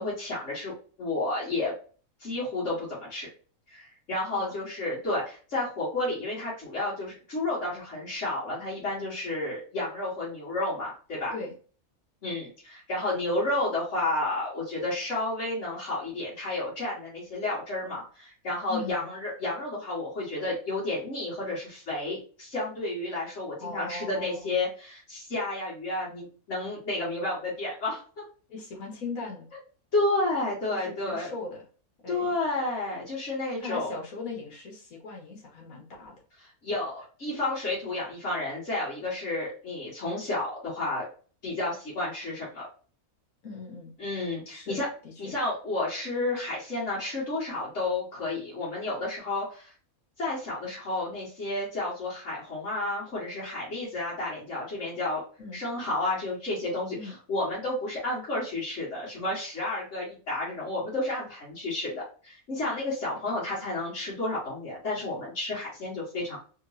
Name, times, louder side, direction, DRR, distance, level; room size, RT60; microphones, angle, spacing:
voice 1, 0.0-1.7 2.2-3.3 3.7-11.3 12.2-28.2 29.9-31.3 32.1-33.9 36.6-41.0 41.4-42.7 44.0-44.9 45.2-49.7 50.2-55.2 55.5-66.4, left 2 dB, 55° left, -8 dB, 1.8 m, -31 dB
voice 2, 18.7-19.1 23.6-24.6 28.5-29.5 30.7-31.6 32.0-32.3 33.6-36.1 43.4-43.9 44.5-45.3 55.4-55.6 56.9-57.2, left 3 dB, 75° left, 0 dB, 1.7 m, -39 dB
3.7 x 3.0 x 2.7 m, 0.39 s
omnidirectional pair, 1.5 m